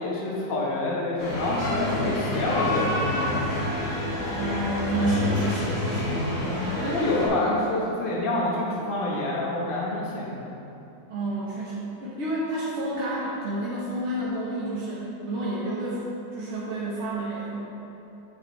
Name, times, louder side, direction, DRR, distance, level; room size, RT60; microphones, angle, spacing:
voice 1, 0.0-3.4 6.8-10.4, left 2 dB, 35° left, -5 dB, 1.3 m, -27 dB
sound 1, 1.2-7.3, left 1 dB, 55° left, 2.2 m, -28 dB
voice 2, 4.4-6.2 11.1-16.0 16.3-17.6, right 1 dB, 45° right, -7 dB, 1.3 m, -29 dB
8.1 x 7.9 x 3.1 m, 3.0 s
omnidirectional pair, 1.9 m